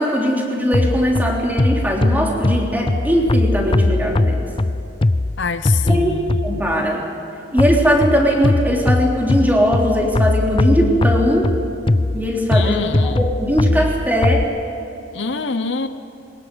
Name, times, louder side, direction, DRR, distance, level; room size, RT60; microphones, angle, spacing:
voice 1, 0.0-4.5 5.9-6.2 6.4-7.1 7.5-11.5 12.1-12.8 13.1-14.5, equal, 10° right, -1 dB, 3.5 m, -19 dB
sound 1, 0.7-6.8 7.6-14.4, left 2 dB, 30° left, 0.5 m, -20 dB
voice 2, 5.4-6.4 12.5-13.2 15.1-15.9, left 4 dB, 70° left, 10 dB, 0.9 m, -25 dB
22.5 x 20.0 x 8.1 m, 2.8 s
head